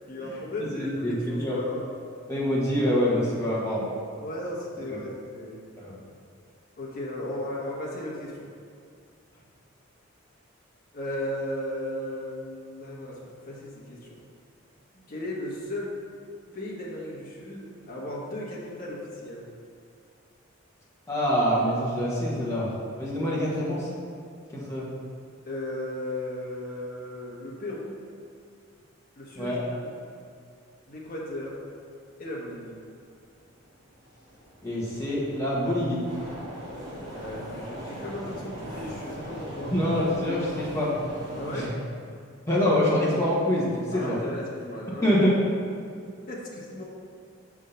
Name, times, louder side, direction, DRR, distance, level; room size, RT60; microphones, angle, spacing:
voice 1, 0.1-1.9 4.2-5.6 6.8-8.5 10.9-13.2 13.5-14.2 15.1-15.9 16.5-19.5 25.4-27.9 29.1-29.9 30.9-31.6 32.2-32.7 37.0-39.7 41.3-41.8 43.9-45.3 46.3-46.8, left 1 dB, 45° left, -5 dB, 1.2 m, -35 dB
voice 2, 0.7-1.6 2.3-3.9 4.9-5.0 5.8-6.0 21.1-22.7 23.0-23.9 24.5-24.9 29.3-29.6 34.6-36.0 39.7-40.9 41.5-41.7 42.5-44.2 45.0-45.3, equal, 15° left, -7 dB, 1.4 m, -25 dB
sound 1, 33.0-33.1 33.7-41.7, equal, 30° right, 1.7 m, -40 dB
6.5 x 3.6 x 5.6 m, 2.3 s
head